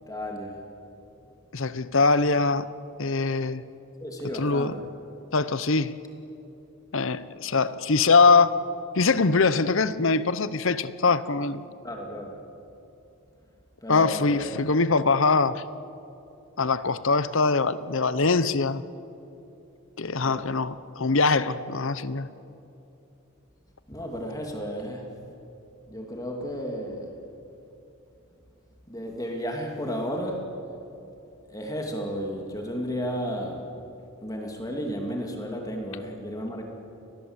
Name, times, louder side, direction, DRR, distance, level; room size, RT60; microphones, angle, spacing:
voice 1, 0.1-0.6 4.0-4.8 11.8-12.4 13.8-14.7 20.2-20.5 23.9-25.1 25.9-27.2 28.9-30.4 31.5-33.7 34.2-36.6, equal, 15° left, 2.7 m, -33 dB
voice 2, 1.5-2.7 3.0-3.6 4.4-4.7 5.3-6.0 6.9-8.6 8.9-11.6 13.9-15.6 16.6-18.8 20.0-22.3, left 4 dB, 60° left, 0.9 m, -22 dB
29.5 x 20.5 x 8.1 m
head